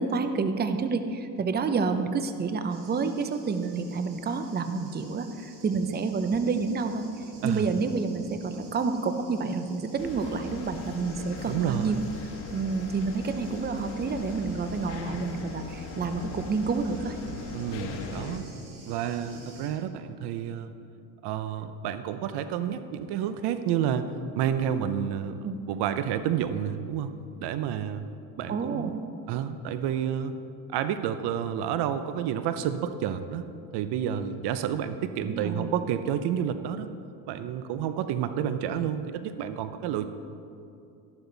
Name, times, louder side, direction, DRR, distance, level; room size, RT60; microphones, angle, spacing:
voice 1, 0.0-7.0 7.4-12.0 12.5-17.2 25.4-25.6 28.5-29.0 35.2-35.7, right 4 dB, 25° right, 8 dB, 0.7 m, -29 dB
Thunder, 2.7-19.7, right 2 dB, 50° right, 3.4 m, -48 dB
sound 1, 10.0-18.4, left 5 dB, 85° left, 1.4 m, -39 dB
voice 2, 11.5-12.0 17.5-18.4 18.9-20.7 21.2-27.1 27.4-28.0 28.4-29.0 29.3-30.3 30.7-36.9 37.3-40.1, right 9 dB, 65° right, 11 dB, 0.8 m, -30 dB
13.5 x 11.5 x 4.0 m, 2.6 s
supercardioid pair, 100°, 42 cm